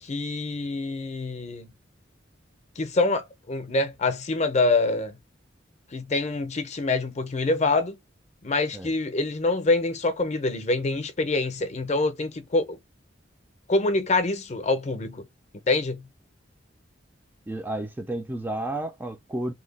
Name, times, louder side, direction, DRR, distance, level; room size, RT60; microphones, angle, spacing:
voice 1, 0.0-1.7 2.8-5.2 5.9-8.0 8.4-12.8 13.7-15.2 15.7-16.0, left 3 dB, 40° left, 0.6 m, -25 dB
voice 2, 17.5-19.5, right 1 dB, 10° right, 0.3 m, -31 dB
2.8 x 2.2 x 4.0 m
head